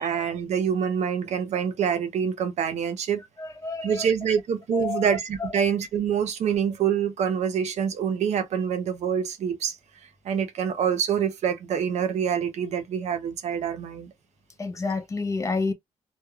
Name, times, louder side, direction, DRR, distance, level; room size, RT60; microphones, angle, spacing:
voice 1, 0.0-3.2 3.8-9.8 10.2-14.1, right 7 dB, 75° right, 0.7 m, -26 dB
voice 2, 3.4-4.1 4.7-5.1 5.4-5.6 14.6-15.7, left 4 dB, 25° left, 0.5 m, -29 dB
3.2 x 2.1 x 2.2 m
wide cardioid pair, 160°, 12 cm